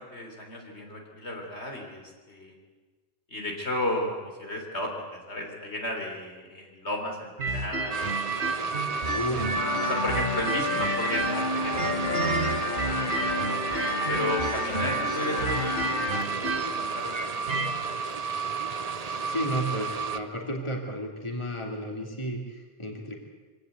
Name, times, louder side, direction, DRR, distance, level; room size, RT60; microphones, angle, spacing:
voice 1, 0.0-2.5 3.3-8.0 8.4-9.1 9.3-9.5 9.8-13.4 14.1-17.5, left 1 dB, 75° left, 1 dB, 3.9 m, -34 dB
sound 1, 7.4-11.4 11.7-17.7, right 3 dB, 75° right, 2.5 m, -31 dB
sound 2, 7.9-20.2, right 5 dB, 40° right, 0.9 m, -32 dB
sound 3, 9.6-16.2, left 4 dB, 45° left, 1.2 m, -31 dB
voice 2, 19.3-23.3, equal, 25° left, 1 dB, 2.9 m, -32 dB
24.0 x 17.5 x 8.1 m, 1.4 s
omnidirectional pair, 1.1 m